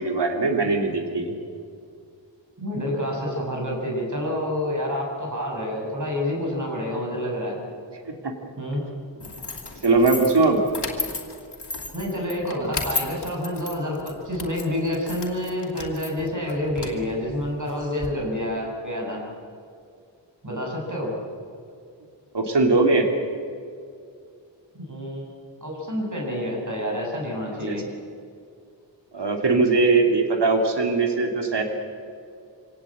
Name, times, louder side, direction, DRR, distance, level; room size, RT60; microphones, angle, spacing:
voice 1, 0.0-1.3 8.1-8.3 9.8-10.6 22.3-23.1 27.7-27.8 29.1-31.6, right 3 dB, 65° right, 4 dB, 2.9 m, -20 dB
voice 2, 2.6-7.6 8.6-8.8 11.9-19.2 20.4-21.2 24.7-25.3 25.6-27.8, left 1 dB, 40° right, -2 dB, 6.7 m, -28 dB
sound 1, 9.2-18.1, left 4 dB, 65° left, 2.7 m, -34 dB
25.5 x 18.0 x 8.6 m, 2.3 s
wide cardioid pair, 80°, 44 cm